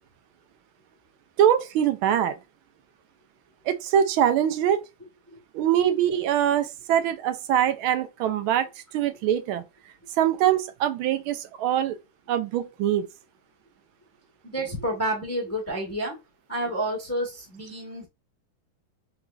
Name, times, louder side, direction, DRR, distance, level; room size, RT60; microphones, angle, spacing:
voice 1, 1.4-2.4 3.6-4.8 5.5-8.7 8.9-9.6 10.2-12.0 12.3-13.1, right 10 dB, 85° right, 1.4 m, -23 dB
voice 2, 14.4-16.2 16.5-18.1, right 1 dB, 15° left, 0.5 m, -29 dB
3.5 x 3.0 x 2.2 m
omnidirectional pair, 2.2 m